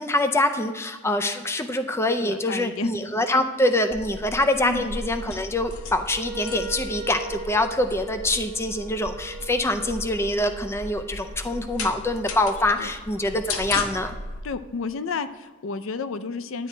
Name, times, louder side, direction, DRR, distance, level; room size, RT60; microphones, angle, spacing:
voice 1, 0.0-14.1, left 1 dB, 10° left, 8 dB, 0.4 m, -25 dB
voice 2, 2.2-2.9 4.6-4.9 12.8-12.9 14.4-16.7, left 4 dB, 70° left, 12 dB, 0.4 m, -31 dB
sound 1, 3.9-14.4, left 2 dB, 90° left, 0.8 m, -37 dB
Wind instrument woodwind instrument, 6.1-12.8, right 3 dB, 40° right, 1.6 m, -41 dB
10.5 x 8.5 x 3.3 m, 1.3 s
head